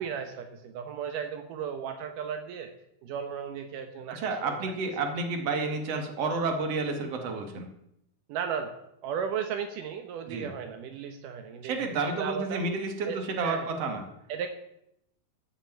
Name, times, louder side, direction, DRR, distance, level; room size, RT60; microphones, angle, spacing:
voice 1, 0.0-2.7 3.0-4.7 8.3-12.6 13.1-13.7 14.3-14.5, right 7 dB, 80° right, 6 dB, 2.7 m, -35 dB
voice 2, 4.1-7.7 10.3-10.5 11.6-14.0, right 3 dB, 50° right, 5 dB, 3.1 m, -30 dB
14.0 x 8.2 x 9.2 m, 0.80 s
omnidirectional pair, 3.7 m